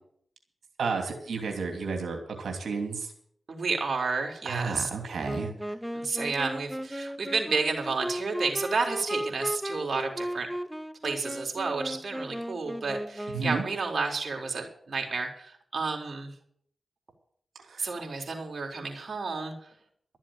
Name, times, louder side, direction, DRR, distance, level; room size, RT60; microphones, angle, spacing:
voice 1, 0.8-3.1 4.4-5.5 13.3-13.6 17.7-17.9, right 4 dB, 80° right, 3 dB, 2.9 m, -32 dB
voice 2, 3.5-4.9 5.9-10.5 11.0-16.3 17.8-19.5, right 4 dB, 60° right, 1 dB, 4.0 m, -31 dB
Wind instrument woodwind instrument, 5.2-13.7, equal, 5° right, 0.8 m, -36 dB
13.5 x 7.5 x 9.0 m, 0.64 s
cardioid pair, 50°, 0 cm